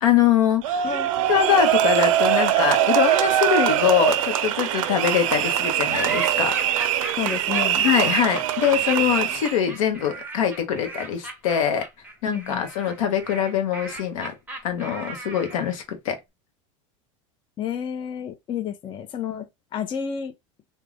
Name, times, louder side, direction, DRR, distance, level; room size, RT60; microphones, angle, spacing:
voice 1, 0.0-0.8 1.3-6.6 7.8-11.9 12.2-14.3 14.6-16.2, left 9 dB, 80° left, 0.7 m, -23 dB
sound 1, 0.6-9.6, right 11 dB, 80° right, 0.4 m, -22 dB
sound 2, 5.9-15.7, right 2 dB, 10° right, 0.6 m, -36 dB
voice 2, 7.2-7.9 12.3-12.6 17.6-19.5 19.7-20.3, left 8 dB, 30° left, 0.4 m, -30 dB
2.3 x 2.2 x 3.2 m
supercardioid pair, 115°, 17 cm